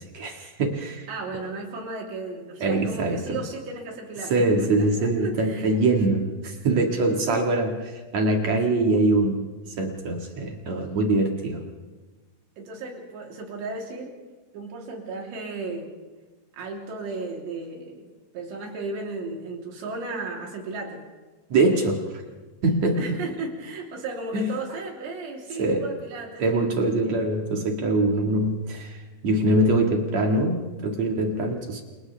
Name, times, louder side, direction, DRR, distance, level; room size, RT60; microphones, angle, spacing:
voice 1, 0.0-1.1 2.6-3.4 4.3-9.5 9.8-11.7 21.5-22.2 22.6-23.1 24.3-24.5 25.6-25.9 26.4-29.0 29.2-31.8, right 2 dB, 50° right, 2 dB, 2.4 m, -23 dB
voice 2, 1.1-5.8 7.0-7.5 12.6-14.2 14.5-15.9 16.5-18.1 18.3-21.0 22.9-27.3, right 3 dB, 75° right, -1 dB, 5.3 m, -35 dB
30.0 x 27.5 x 3.4 m, 1.3 s
omnidirectional pair, 5.1 m